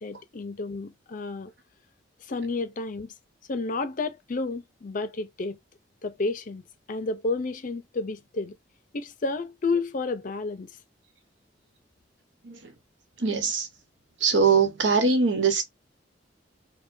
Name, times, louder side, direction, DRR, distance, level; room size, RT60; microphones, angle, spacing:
voice 1, 0.0-1.5 2.3-3.1 3.5-5.6 6.0-8.6 8.9-10.7, left 3 dB, 45° left, 0.5 m, -31 dB
voice 2, 13.2-13.7 14.2-15.6, right 5 dB, 75° right, 1.1 m, -22 dB
4.8 x 2.2 x 2.6 m
head